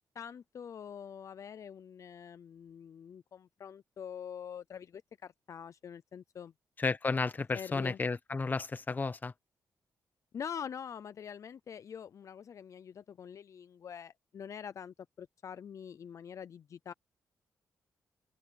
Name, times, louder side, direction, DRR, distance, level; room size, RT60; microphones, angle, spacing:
voice 1, 0.0-6.5 7.5-8.0 10.3-16.9, left 8 dB, 55° left, 0.5 m, -45 dB
voice 2, 6.8-9.3, left 4 dB, 25° left, 1.1 m, -32 dB
open air
cardioid pair, 120°, 7 cm